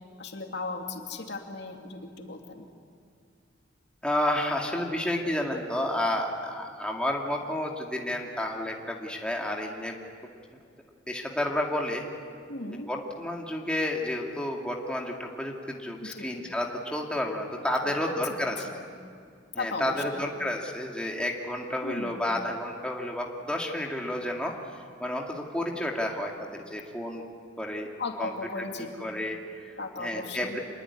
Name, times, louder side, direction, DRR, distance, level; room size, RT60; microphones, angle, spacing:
voice 1, 0.2-2.7 12.5-12.9 16.1-16.3 17.8-18.9 19.6-20.2 21.8-22.2 28.0-28.9 29.8-30.6, left 3 dB, 60° left, 2 dB, 2.8 m, -37 dB
voice 2, 4.0-9.9 11.1-12.0 12.9-18.7 19.5-24.5 25.0-27.2 27.6-27.9 28.2-28.3 28.6-28.7 29.0-30.6, left 1 dB, 5° left, 0 dB, 2.3 m, -31 dB
27.0 x 21.5 x 9.8 m, 2.3 s
head